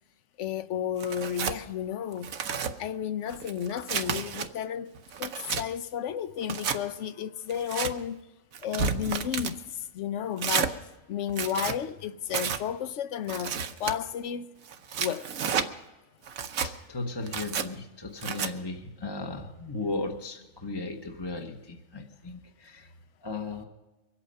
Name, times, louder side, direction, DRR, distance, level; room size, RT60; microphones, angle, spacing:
voice 1, 0.4-2.3 2.8-4.9 5.2-8.2 8.6-10.8 11.1-14.5 14.9-15.3, left 9 dB, 65° left, 1.0 m, -32 dB
Tearing, 1.0-1.6 2.1-2.7 3.3-4.5 5.0-5.6 6.4-6.8 7.5-7.9 8.5-9.6 10.4-10.7 11.3-11.8 12.3-12.6 13.3-13.9 14.7-15.7 16.3-16.7 17.3-17.7 18.2-18.5, right 6 dB, 80° right, 1.3 m, -31 dB
voice 2, 16.6-22.9 23.2-23.6, left 3 dB, 20° left, 0.9 m, -36 dB
24.0 x 8.5 x 5.4 m
omnidirectional pair, 1.4 m